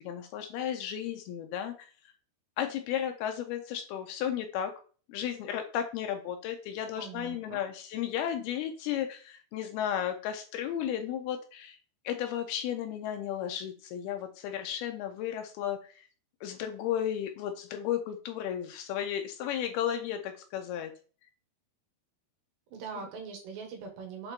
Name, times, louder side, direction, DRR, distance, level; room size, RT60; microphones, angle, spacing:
voice 1, 0.0-1.9 2.6-4.7 5.1-11.8 12.0-16.1 16.4-20.9 23.0-23.1, left 10 dB, 80° left, 6 dB, 2.5 m, -34 dB
voice 2, 7.0-7.6 22.7-24.3, right 5 dB, 85° right, 3 dB, 3.9 m, -42 dB
8.0 x 3.8 x 4.4 m, 0.39 s
omnidirectional pair, 4.9 m